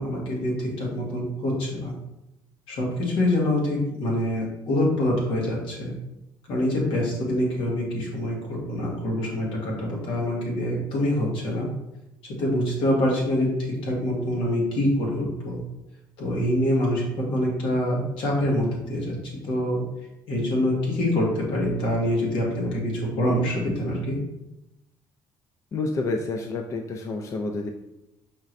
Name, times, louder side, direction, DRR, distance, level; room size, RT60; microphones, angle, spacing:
voice 1, 0.0-1.9 2.7-5.9 6.5-11.7 12.4-15.6 16.2-19.1 19.5-19.8 20.3-24.2, left 1 dB, 85° left, -3 dB, 1.5 m, -25 dB
voice 2, 25.7-27.7, left 3 dB, 35° left, 4 dB, 0.3 m, -29 dB
5.2 x 3.1 x 2.6 m, 0.90 s
cardioid pair, 125°, 9 cm